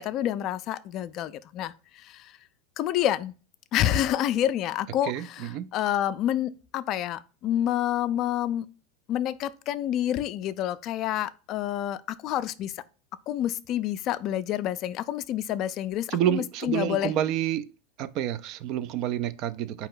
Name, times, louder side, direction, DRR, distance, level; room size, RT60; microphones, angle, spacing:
voice 1, 0.0-2.3 2.8-3.3 3.7-8.7 9.1-12.8 13.3-17.1, left 11 dB, 50° left, 0.3 m, -28 dB
voice 2, 5.1-5.7 16.1-17.7 18.0-19.9, right 11 dB, 55° right, 0.3 m, -28 dB
4.4 x 2.8 x 3.8 m
hypercardioid pair, 100°, 0 cm